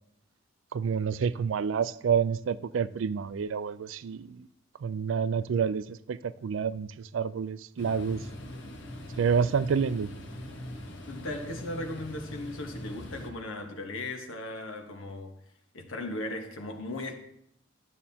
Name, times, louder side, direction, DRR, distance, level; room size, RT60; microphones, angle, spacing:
voice 1, 0.7-4.5 4.8-6.9 7.1-8.2 9.2-10.1, right 6 dB, 70° right, 0.4 m, -28 dB
sound 1, 7.8-13.3, left 1 dB, 65° left, 1.1 m, -42 dB
voice 2, 11.1-15.3 15.7-17.1, left 1 dB, 90° left, 1.2 m, -37 dB
12.0 x 7.4 x 2.8 m
head